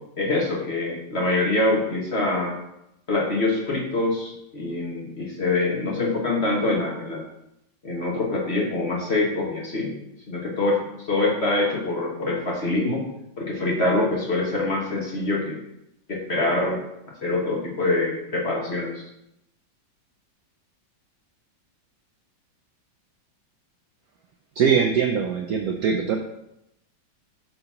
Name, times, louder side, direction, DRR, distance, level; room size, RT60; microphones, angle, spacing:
voice 1, 0.2-2.6 3.1-7.2 7.8-9.9 10.3-10.8 11.1-13.1 13.4-15.6 16.1-16.8 17.2-19.0, left 2 dB, 40° left, -3 dB, 1.2 m, -24 dB
voice 2, 24.6-26.2, right 7 dB, 75° right, 4 dB, 0.8 m, -22 dB
5.8 x 3.8 x 5.5 m, 0.83 s
omnidirectional pair, 2.1 m